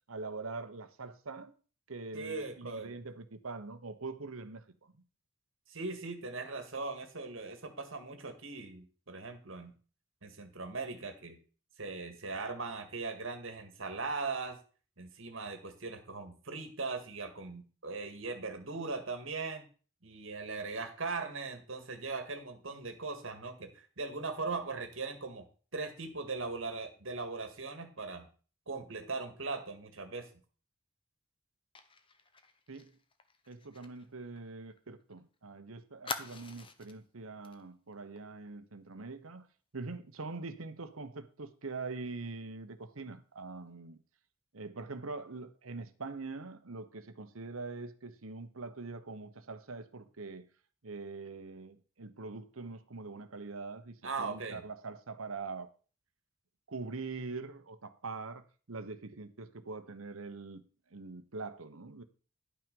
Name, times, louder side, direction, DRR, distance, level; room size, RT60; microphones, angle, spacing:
voice 1, 0.1-1.5 1.9-5.0 32.7-32.9 33.5-39.5 39.7-44.0 44.5-50.4 50.8-55.7 56.7-58.4 58.7-60.6 60.9-62.0, right 3 dB, 85° right, 1.0 m, -43 dB
voice 2, 2.1-2.9 5.7-9.8 10.2-11.4 11.8-14.6 15.0-19.6 20.0-23.7 24.0-25.5 25.7-28.3 28.7-30.3 54.0-54.7, right 3 dB, 65° right, 1.9 m, -39 dB
Fire, 31.7-35.2 35.4-35.5 36.0-37.0 37.4-37.6 37.9-38.2, left 4 dB, 25° left, 0.8 m, -45 dB
11.0 x 5.9 x 5.3 m
head